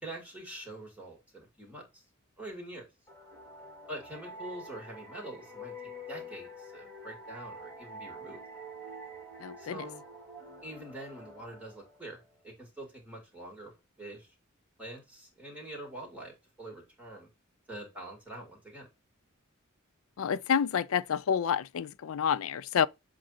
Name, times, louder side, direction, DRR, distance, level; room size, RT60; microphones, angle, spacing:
voice 1, 0.0-2.0 2.4-2.8 3.9-8.4 9.6-10.0 10.6-13.7 14.0-14.3 14.8-17.3 17.7-18.9, right 1 dB, 5° right, 2.3 m, -45 dB
sound 1, 3.1-12.5, equal, 15° left, 2.1 m, -47 dB
voice 2, 9.4-9.8 20.2-22.9, left 7 dB, 70° left, 0.4 m, -29 dB
7.5 x 2.6 x 5.7 m
head